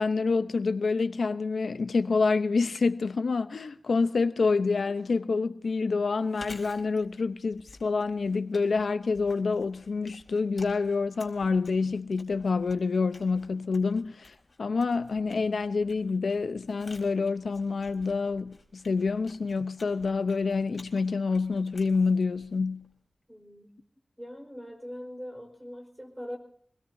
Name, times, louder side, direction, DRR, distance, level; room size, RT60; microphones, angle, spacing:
voice 1, 0.0-22.9, left 4 dB, 80° left, 0.8 m, -27 dB
Chewing mastication, 6.2-23.0, left 2 dB, 40° left, 4.3 m, -53 dB
voice 2, 23.3-23.7 24.2-26.4, equal, 10° right, 4.8 m, -41 dB
25.5 x 20.5 x 2.7 m
wide cardioid pair, 85°, 0 cm